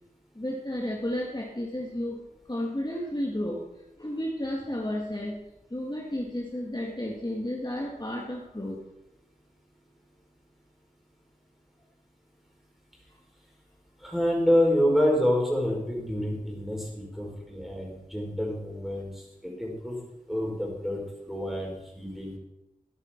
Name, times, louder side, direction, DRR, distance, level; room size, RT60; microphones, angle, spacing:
voice 1, 0.4-2.2 2.5-3.6 4.0-5.4 5.7-8.8 13.1-13.2, left 1 dB, 30° left, -2 dB, 1.8 m, -32 dB
voice 2, 14.0-19.9 20.3-22.4, equal, ahead, -2 dB, 5.0 m, -27 dB
13.5 x 10.5 x 4.5 m, 0.94 s
wide cardioid pair, 40°, 14 cm